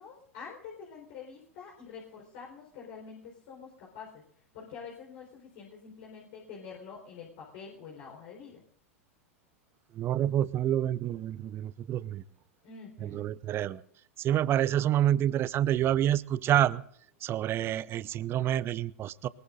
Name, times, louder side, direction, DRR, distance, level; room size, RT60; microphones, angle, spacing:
voice 1, 0.0-4.2 4.5-8.6 12.6-13.2, left 6 dB, 55° left, -2 dB, 4.2 m, -46 dB
voice 2, 9.9-12.2 13.0-13.8 14.2-16.8 17.2-19.3, right 11 dB, 30° right, 19 dB, 0.6 m, -28 dB
22.5 x 20.0 x 2.6 m, 0.63 s
hypercardioid pair, 95°, 7 cm